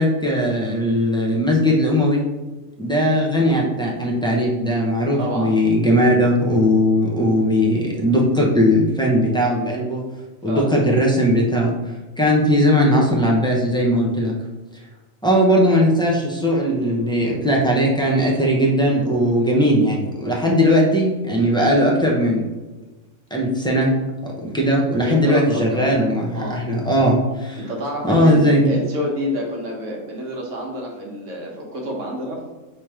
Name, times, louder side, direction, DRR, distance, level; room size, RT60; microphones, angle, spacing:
voice 1, 0.0-2.2 2.8-10.0 10.4-14.3 15.2-22.5 23.3-23.9 24.2-27.6 28.0-28.7, equal, 10° left, -3 dB, 0.3 m, -18 dB
voice 2, 5.2-5.5 10.4-10.7 25.0-25.9 26.3-26.6 27.6-32.5, equal, 65° right, -1 dB, 1.3 m, -28 dB
3.4 x 2.9 x 4.7 m, 1.2 s
omnidirectional pair, 1.4 m